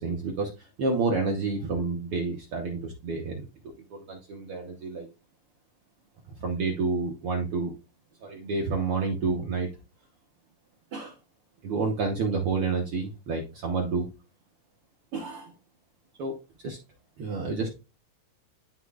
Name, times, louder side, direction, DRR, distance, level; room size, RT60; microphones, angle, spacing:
voice 1, 0.0-3.4 3.9-5.1 6.4-7.7 8.2-9.7 10.9-11.1 11.6-14.1 15.1-15.5 16.2-16.4 16.6-16.8 17.2-17.7, right 4 dB, 75° right, 1 dB, 1.3 m, -29 dB
11.5 x 4.4 x 2.4 m, 0.30 s
omnidirectional pair, 3.8 m